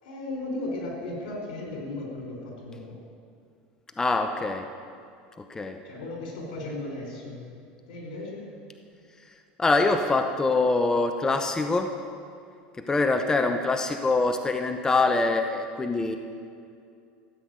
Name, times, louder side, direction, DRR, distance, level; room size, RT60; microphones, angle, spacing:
voice 1, 0.0-3.0 5.8-7.5 7.9-8.4, left 2 dB, 85° left, 0 dB, 4.7 m, -36 dB
voice 2, 4.0-4.7 5.5-5.8 9.6-11.9 12.8-16.2, left 3 dB, 15° left, 6 dB, 0.8 m, -24 dB
14.5 x 8.0 x 9.3 m, 2.4 s
supercardioid pair, 120°, 4 cm